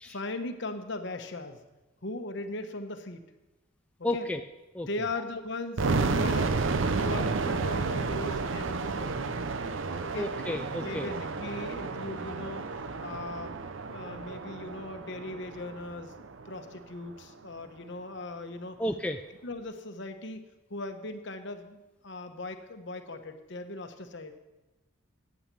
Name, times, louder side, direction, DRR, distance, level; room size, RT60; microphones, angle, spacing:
voice 1, 0.0-1.6 2.0-3.2 4.1-4.3 4.8-6.6 6.9-9.4 10.0-10.3 10.8-12.6 13.0-18.8 19.4-24.3, left 2 dB, 55° left, 7 dB, 1.0 m, -39 dB
voice 2, 4.0-4.4 4.7-4.9 10.1-11.1 18.8-19.2, left 1 dB, 5° left, 5 dB, 0.3 m, -32 dB
sound 1, 5.8-16.7, right 4 dB, 60° right, 0.6 m, -31 dB
9.2 x 8.8 x 8.2 m, 1.1 s
head